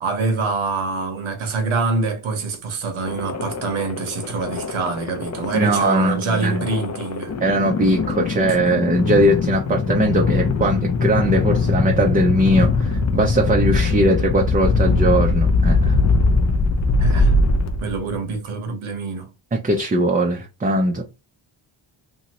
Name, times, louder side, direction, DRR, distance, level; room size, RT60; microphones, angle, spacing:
voice 1, 0.0-7.4 17.0-17.3 17.8-19.3, right 4 dB, 90° right, 1.1 m, -25 dB
sound 1, 3.1-18.2, left 3 dB, 35° left, 0.5 m, -21 dB
voice 2, 5.5-6.6 7.4-15.9 19.5-21.0, right 1 dB, 20° right, 0.5 m, -20 dB
2.7 x 2.7 x 2.9 m
cardioid pair, 85°, 47 cm